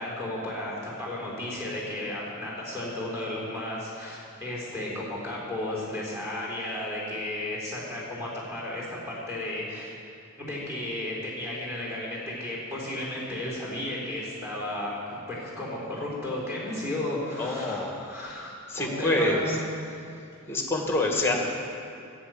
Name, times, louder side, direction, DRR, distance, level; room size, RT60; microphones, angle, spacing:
voice 1, 0.0-9.9 10.4-18.5 18.8-19.5, left 1 dB, 10° right, -4 dB, 3.7 m, -34 dB
voice 2, 17.4-18.1 18.7-19.6 20.5-21.3, left 2 dB, 10° left, 1 dB, 1.5 m, -26 dB
11.0 x 8.8 x 7.6 m, 2.4 s
head